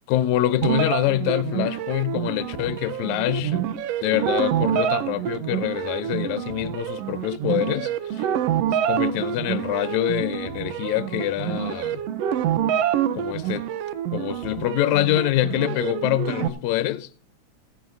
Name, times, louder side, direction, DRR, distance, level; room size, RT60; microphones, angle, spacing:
voice 1, 0.1-3.7 4.0-8.3 8.9-12.0 13.1-13.6 14.1-17.1, left 14 dB, 80° left, 2.0 m, -25 dB
sound 1, 0.6-16.5, right 10 dB, 70° right, 1.7 m, -27 dB
16.5 x 15.5 x 2.6 m
omnidirectional pair, 3.4 m